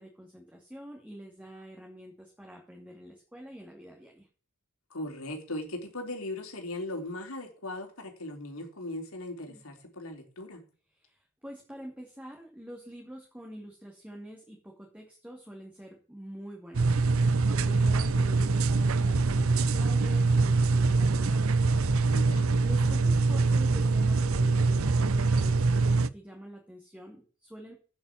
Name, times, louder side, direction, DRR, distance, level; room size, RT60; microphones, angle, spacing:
voice 1, 0.0-4.3 9.5-9.6 11.0-21.7 22.6-27.7, right 1 dB, 5° right, 0 dB, 2.7 m, -46 dB
voice 2, 4.9-10.6 22.1-22.7, left 1 dB, 75° left, 3 dB, 3.7 m, -38 dB
sound 1, 16.7-26.1, right 3 dB, 70° right, 0.7 m, -24 dB
8.7 x 8.6 x 7.3 m, 0.37 s
head